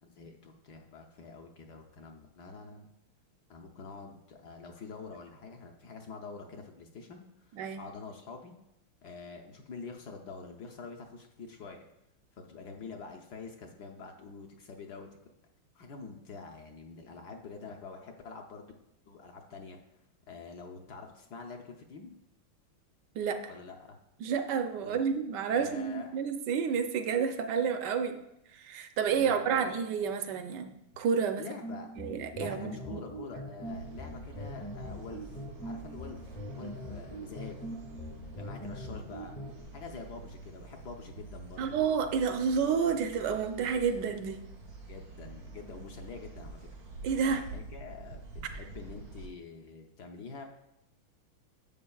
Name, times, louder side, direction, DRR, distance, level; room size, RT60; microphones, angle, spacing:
voice 1, 0.0-2.9 3.5-8.5 9.0-11.8 12.3-15.1 15.7-18.7 19.1-19.8 20.3-22.1 23.5-24.0 24.8-25.1 25.5-26.2 29.1-29.8 31.4-31.9 32.3-37.6 38.3-39.4 39.7-41.8 44.9-46.7 47.2-48.2 48.5-50.4, left 4 dB, 65° left, 2 dB, 1.2 m, -46 dB
voice 2, 7.6-7.9 23.1-23.5 24.2-28.2 28.5-31.5 32.0-33.0 41.6-44.4 47.0-47.5, right 6 dB, 70° right, 7 dB, 1.1 m, -30 dB
sound 1, 31.6-39.6, equal, 30° left, 0.8 m, -42 dB
sound 2, 33.6-49.3, right 3 dB, 85° right, 2.5 m, -47 dB
11.0 x 7.6 x 2.4 m, 0.85 s
omnidirectional pair, 2.3 m